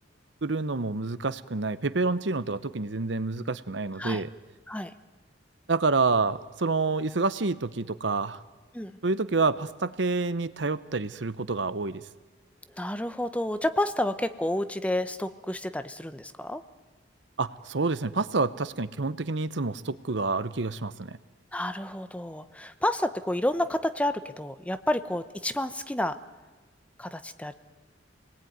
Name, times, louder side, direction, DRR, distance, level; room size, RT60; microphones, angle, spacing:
voice 1, 0.4-4.3 5.7-8.4 9.0-12.0 17.4-21.2, right 3 dB, 65° right, 14 dB, 0.9 m, -28 dB
voice 2, 12.7-16.6 21.5-26.2 27.0-27.5, left 1 dB, 5° left, 10 dB, 0.8 m, -30 dB
28.5 x 20.0 x 9.4 m, 1.3 s
head